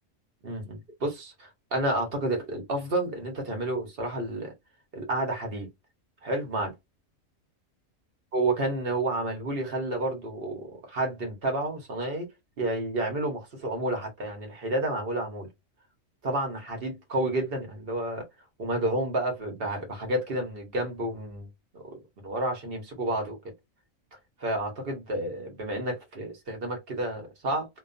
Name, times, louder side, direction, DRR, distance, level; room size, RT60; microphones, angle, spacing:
voice 1, 0.4-4.5 4.9-5.7 6.2-6.7 8.3-12.3 12.6-15.5 16.2-18.2 18.6-21.5 21.7-23.4 24.4-27.7, right 1 dB, 50° right, 1.1 m, -30 dB
2.5 x 2.3 x 2.5 m
omnidirectional pair, 1.3 m